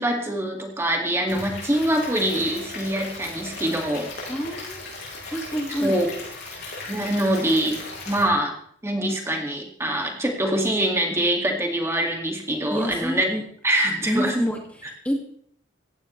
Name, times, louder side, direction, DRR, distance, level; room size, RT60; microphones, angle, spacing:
voice 1, 0.0-4.1 5.8-6.1 6.9-7.8 8.1-8.5 8.8-13.3 13.6-14.3, right 1 dB, 15° right, 1 dB, 2.1 m, -24 dB
Stream / Liquid, 1.3-8.2, left 3 dB, 55° left, 6.5 m, -37 dB
voice 2, 4.3-5.0 5.3-6.0 12.6-13.4 14.1-15.1, equal, 5° left, 1 dB, 2.0 m, -28 dB
16.5 x 16.0 x 3.2 m, 0.63 s
head